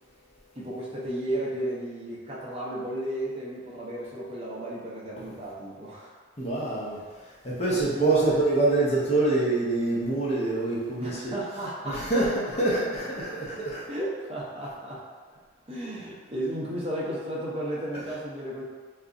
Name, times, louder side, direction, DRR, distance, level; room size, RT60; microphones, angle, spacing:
voice 1, 0.5-6.1 7.7-8.4 11.0-12.3 13.9-15.0 15.7-18.6, right 1 dB, 30° right, -6 dB, 0.6 m, -34 dB
voice 2, 6.4-11.3 11.8-13.8, right 2 dB, 35° left, -7 dB, 0.7 m, -26 dB
2.3 x 2.0 x 3.6 m, 1.5 s
head